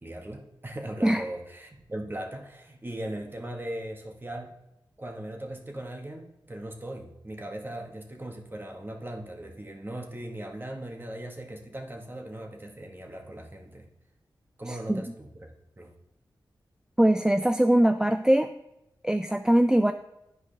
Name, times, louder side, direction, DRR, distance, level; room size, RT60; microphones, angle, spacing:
voice 1, 0.0-4.5 5.0-13.9 14.6-15.5 15.8-15.9, right 1 dB, 25° right, 2 dB, 1.4 m, -39 dB
voice 2, 17.0-18.5 19.0-19.9, right 1 dB, 10° right, 8 dB, 0.3 m, -21 dB
11.0 x 4.8 x 3.4 m, 0.89 s
cardioid pair, 70°, 8 cm